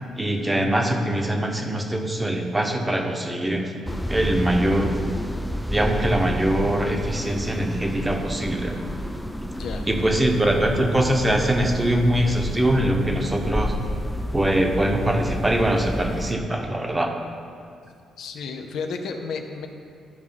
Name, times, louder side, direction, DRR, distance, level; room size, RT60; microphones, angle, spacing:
voice 1, 0.2-3.7 4.1-5.0 5.7-8.8 9.9-13.7 14.3-17.1, right 1 dB, 15° right, 3 dB, 1.0 m, -22 dB
sound 1, 3.9-16.3, equal, 5° left, 0.4 m, -30 dB
voice 2, 18.2-19.7, left 5 dB, 75° left, 4 dB, 0.8 m, -32 dB
11.0 x 4.8 x 5.8 m, 2.3 s
cardioid pair, 90°, 0 cm